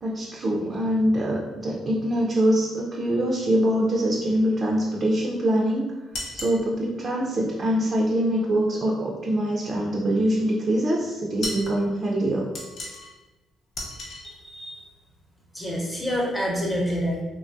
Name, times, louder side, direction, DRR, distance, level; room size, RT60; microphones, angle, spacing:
voice 1, 0.0-5.8 6.3-12.5, right 1 dB, 45° right, -3 dB, 0.5 m, -24 dB
sound 1, 6.1-6.6 11.4-11.7 12.5-13.1 13.7-14.2, left 1 dB, 70° left, 0.8 m, -34 dB
voice 2, 14.2-14.8 15.5-17.2, equal, 10° left, -2 dB, 0.8 m, -27 dB
3.2 x 2.2 x 2.5 m, 1.1 s
cardioid pair, 80°, 0 cm